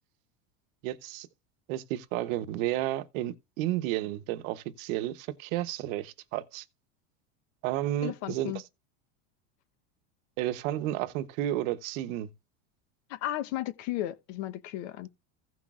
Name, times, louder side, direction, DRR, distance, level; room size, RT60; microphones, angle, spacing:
voice 1, 0.8-1.3 1.7-6.6 7.6-8.6 10.4-12.3, right 14 dB, 70° right, 0.9 m, -32 dB
voice 2, 8.0-8.6 13.1-15.1, left 14 dB, 65° left, 1.0 m, -34 dB
16.0 x 6.1 x 2.4 m
supercardioid pair, 140°, 41 cm